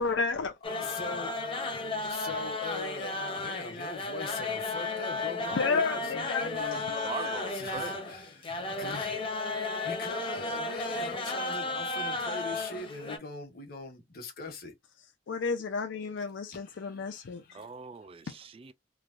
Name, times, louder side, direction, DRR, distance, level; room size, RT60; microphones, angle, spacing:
voice 1, 0.0-0.5 5.5-7.4 15.3-17.6, left 4 dB, 90° left, 0.5 m, -32 dB
voice 2, 0.6-1.4 2.1-7.1 7.5-14.7 16.5-17.6, left 3 dB, 55° left, 1.1 m, -42 dB
sound 1, 0.6-13.2, left 3 dB, 30° left, 0.7 m, -34 dB
voice 3, 7.0-8.1 17.5-18.7, right 4 dB, 30° right, 0.4 m, -41 dB
3.2 x 2.1 x 2.5 m
head